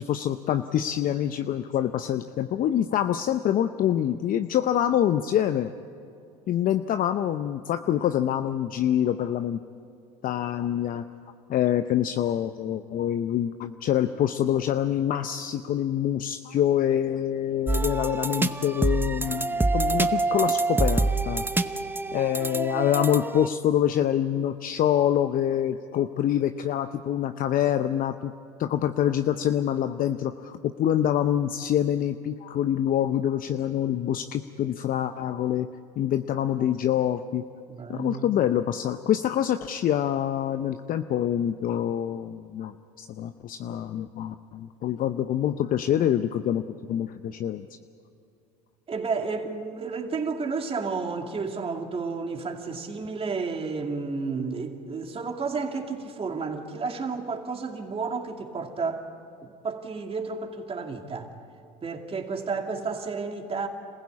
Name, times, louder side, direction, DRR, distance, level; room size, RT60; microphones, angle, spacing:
voice 1, 0.0-5.7 6.5-9.6 10.2-11.0 11.5-21.4 22.1-28.3 28.6-35.7 36.0-37.4 37.9-46.6 46.9-47.7, left 10 dB, 45° left, 10 dB, 0.7 m, -26 dB
sound 1, 17.7-23.5, right 3 dB, 10° right, 0.8 m, -26 dB
voice 2, 37.7-38.3 48.9-59.0 59.4-61.3 61.8-63.7, right 4 dB, 30° right, 3 dB, 2.5 m, -31 dB
26.5 x 15.5 x 8.6 m, 2.5 s
hypercardioid pair, 80°, 19 cm